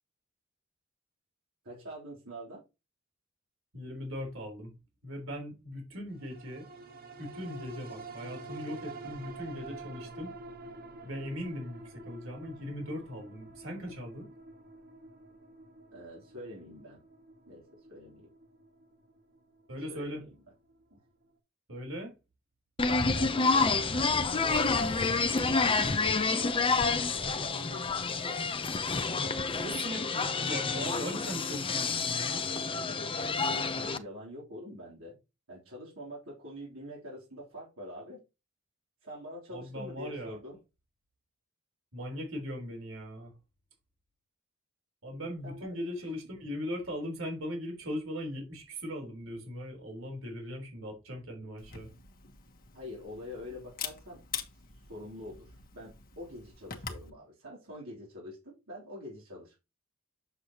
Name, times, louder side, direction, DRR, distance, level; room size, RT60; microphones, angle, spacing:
voice 1, 1.6-2.6 15.9-17.0 17.5-18.3 19.9-20.4 20.9-21.0 22.8-26.7 27.1-28.5 33.4-35.2 35.5-38.2 39.0-40.6 45.4-45.8 52.7-54.2 54.9-59.6, equal, 85° right, 3.3 m, -45 dB
voice 2, 3.7-4.7 5.0-6.7 7.2-10.3 11.0-14.3 19.7-20.2 21.7-22.1 29.6-32.4 39.5-40.4 41.9-43.3 45.0-51.9, equal, 70° right, 3.7 m, -39 dB
sound 1, 6.2-20.9 21.3-21.4, right 2 dB, 50° right, 1.4 m, -48 dB
sound 2, 22.8-34.0, left 4 dB, 25° left, 0.7 m, -29 dB
Camera, 51.6-57.1, left 7 dB, 45° left, 1.3 m, -44 dB
7.9 x 6.8 x 2.9 m
head